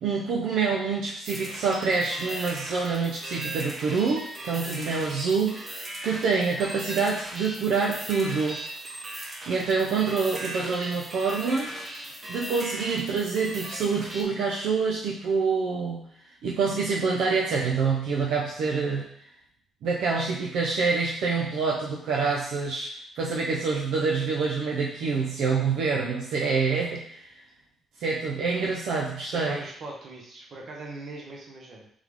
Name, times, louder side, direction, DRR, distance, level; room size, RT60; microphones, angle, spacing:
voice 1, 0.0-8.6 9.5-11.7 12.3-16.0 16.4-19.1 19.8-22.9 23.2-27.3 28.0-29.6, right 4 dB, 80° right, -3 dB, 0.6 m, -26 dB
sound 1, 1.2-14.2, right 1 dB, 30° right, 0.9 m, -38 dB
voice 2, 29.3-31.9, right 2 dB, 55° right, -1 dB, 1.1 m, -40 dB
3.6 x 3.2 x 3.5 m, 0.65 s
cardioid pair, 90°, 0 cm